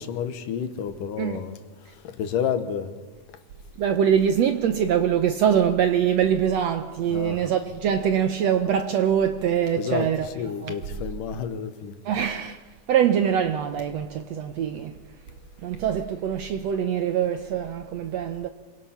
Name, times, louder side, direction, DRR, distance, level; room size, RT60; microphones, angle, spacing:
voice 1, 0.0-1.6 2.0-2.9 7.1-7.4 9.8-12.0, left 8 dB, 75° left, 2.8 m, -30 dB
voice 2, 3.8-10.8 12.0-12.6 12.9-14.9 15.6-18.5, right 8 dB, 70° right, 1.6 m, -23 dB
27.0 x 23.0 x 5.8 m
omnidirectional pair, 3.9 m